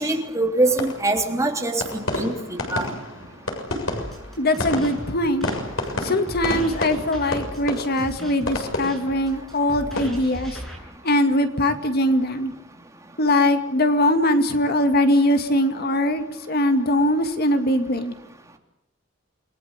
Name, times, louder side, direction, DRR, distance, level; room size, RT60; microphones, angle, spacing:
voice 1, 0.0-2.3 2.7-2.9, right 2 dB, 15° right, 3 dB, 3.4 m, -23 dB
sound 1, 0.6-11.8 12.0-12.5, left 2 dB, 85° left, 6.9 m, -31 dB
sound 2, 3.9-10.8, equal, ahead, 8.0 m, -37 dB
voice 2, 4.4-5.5 6.0-10.6 11.0-12.5 13.2-18.1, left 1 dB, 50° left, 7 dB, 2.2 m, -21 dB
29.0 x 21.0 x 8.3 m, 0.79 s
head